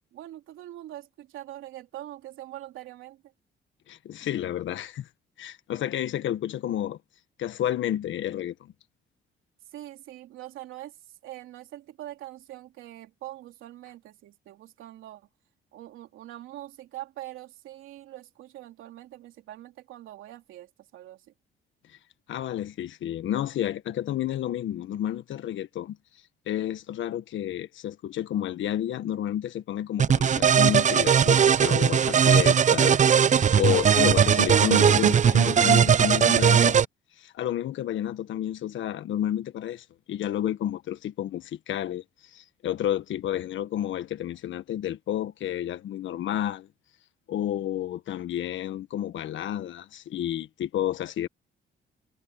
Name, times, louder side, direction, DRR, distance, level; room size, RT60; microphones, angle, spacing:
voice 1, 0.1-3.2 9.7-10.9 11.2-15.2 15.7-21.2, right 14 dB, 90° right, 3.3 m, -43 dB
voice 2, 3.9-5.1 5.4-7.0 7.4-8.7 22.3-26.0 26.5-36.8 37.2-42.0 42.3-46.7 47.3-51.3, left 11 dB, 75° left, 1.5 m, -30 dB
sound 1, 30.0-36.8, right 7 dB, 40° right, 0.6 m, -19 dB
cardioid pair, 90°, 20 cm